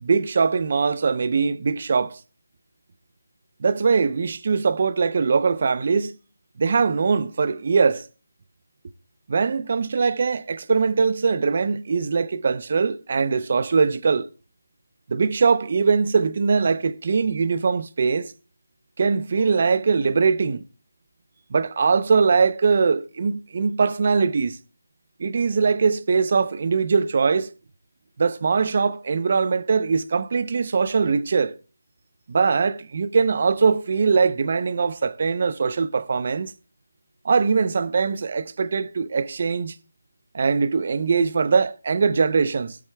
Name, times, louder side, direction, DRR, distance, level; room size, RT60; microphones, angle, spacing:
voice 1, 0.0-2.2 3.6-6.1 6.6-8.1 9.3-14.3 15.1-18.3 19.0-20.6 21.5-24.6 25.2-27.5 28.2-31.5 32.3-36.5 37.2-39.7 40.3-42.8, right 5 dB, 40° right, 0.6 m, -21 dB
17.5 x 8.5 x 2.3 m
figure-of-eight pair, 170°, 0 cm